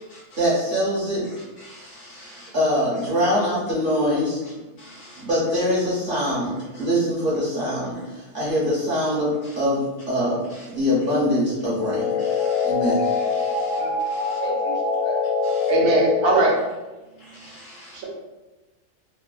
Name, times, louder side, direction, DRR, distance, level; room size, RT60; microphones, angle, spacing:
voice 1, 0.4-1.2 2.5-4.4 5.2-10.4 10.7-12.1 12.6-13.0, equal, 50° right, -8 dB, 0.7 m, -23 dB
voice 2, 1.6-2.5 2.9-3.0 4.8-5.2 12.2-12.7 13.1-13.8 14.1-14.4 15.4-15.7 17.4-18.0, right 1 dB, 60° left, -5 dB, 0.8 m, -43 dB
sound 1, 11.6-16.5, left 5 dB, 85° left, 1.1 m, -24 dB
voice 3, 14.4-15.2 15.7-16.5, right 2 dB, 75° right, -3 dB, 1.2 m, -21 dB
3.0 x 2.0 x 2.3 m, 1.1 s
omnidirectional pair, 1.6 m